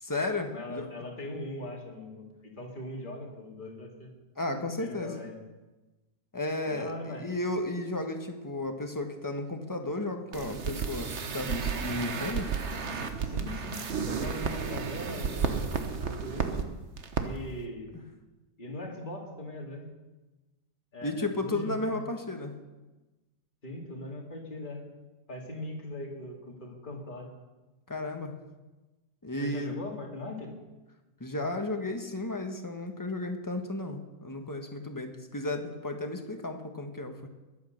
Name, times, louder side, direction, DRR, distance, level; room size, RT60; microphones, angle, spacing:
voice 1, 0.0-0.9 4.3-5.2 6.3-12.5 21.0-22.5 27.9-28.3 29.2-29.7 31.2-37.3, left 2 dB, 15° left, 4 dB, 1.3 m, -33 dB
voice 2, 0.5-4.1 4.8-5.4 6.6-7.3 13.2-16.7 17.2-18.0 18.6-19.9 20.9-22.0 23.6-24.8 25.3-27.3 29.4-30.5, left 1 dB, 30° left, -1 dB, 2.8 m, -40 dB
sound 1, 10.3-16.6 17.0-17.2 17.5-17.6, right 5 dB, 50° right, 1.3 m, -32 dB
21.5 x 8.6 x 6.6 m, 1.1 s
omnidirectional pair, 1.6 m